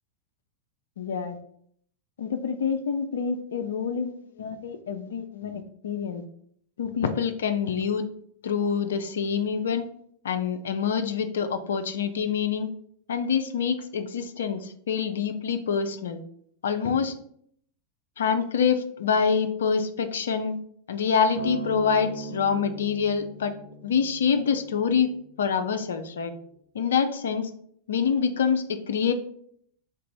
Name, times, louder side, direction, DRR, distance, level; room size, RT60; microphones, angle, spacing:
voice 1, 1.0-1.4 2.2-6.2 6.8-8.0 8.4-9.8 10.2-12.7 13.1-16.2 16.6-17.1 18.2-20.6 20.9-23.5 23.8-25.1 25.4-26.3 26.7-27.5 27.9-29.1, left 6 dB, 65° left, 8 dB, 0.4 m, -26 dB
Acoustic guitar, 21.4-25.6 26.5-26.6, right 4 dB, 35° right, 1.3 m, -38 dB
3.8 x 2.6 x 4.1 m, 0.65 s
figure-of-eight pair, 90°, 0 cm